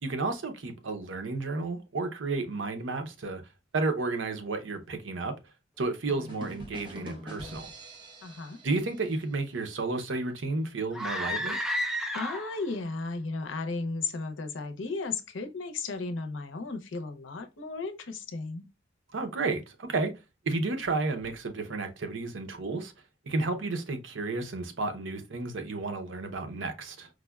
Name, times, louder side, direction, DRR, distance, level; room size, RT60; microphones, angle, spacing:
voice 1, 0.0-3.4 3.7-5.3 5.8-7.7 8.6-11.6 19.1-20.1 20.4-22.9 23.3-27.1, right 3 dB, 85° right, 0.7 m, -32 dB
sound 1, 6.1-9.8, equal, 25° right, 0.7 m, -45 dB
voice 2, 8.2-8.6 12.1-18.6, left 3 dB, 85° left, 0.6 m, -35 dB
sound 2, 10.9-12.7, equal, 5° right, 0.3 m, -31 dB
4.7 x 2.1 x 2.3 m
head